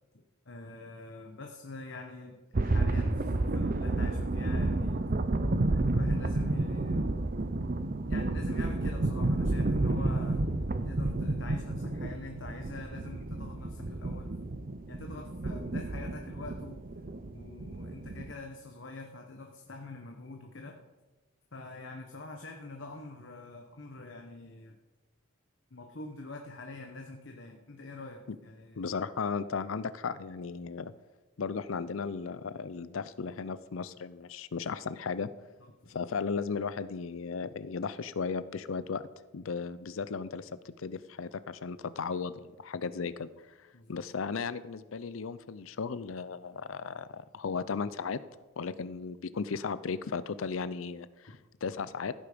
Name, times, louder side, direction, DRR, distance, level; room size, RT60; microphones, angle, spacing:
voice 1, 0.4-5.0 5.7-7.0 8.1-10.4 10.8-14.4 14.9-16.8 17.3-20.8 21.5-24.8 25.7-28.8 35.8-36.0 43.7-44.0, left 2 dB, 65° left, 3 dB, 1.1 m, -45 dB
sound 1, 2.5-18.3, right 2 dB, 45° right, 0.7 m, -31 dB
voice 2, 28.8-30.9 31.4-35.3 35.9-39.1 39.3-43.3 43.9-48.2 48.6-52.1, left 5 dB, 80° left, 15 dB, 0.5 m, -35 dB
15.5 x 8.5 x 5.1 m, 1.2 s
head